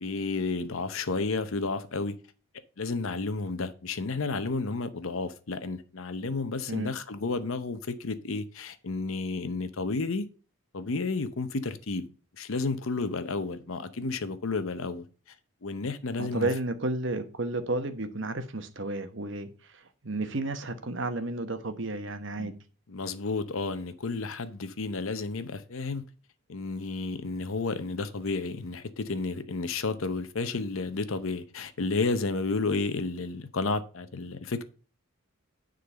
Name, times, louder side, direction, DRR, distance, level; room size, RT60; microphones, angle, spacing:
voice 1, 0.0-2.2 2.8-10.3 10.7-12.1 12.4-15.1 15.6-16.5 22.4-22.5 22.9-26.0 26.5-34.6, left 3 dB, 70° left, 0.8 m, -31 dB
voice 2, 16.2-22.6, right 2 dB, 55° right, 1.0 m, -32 dB
9.9 x 3.9 x 6.7 m
head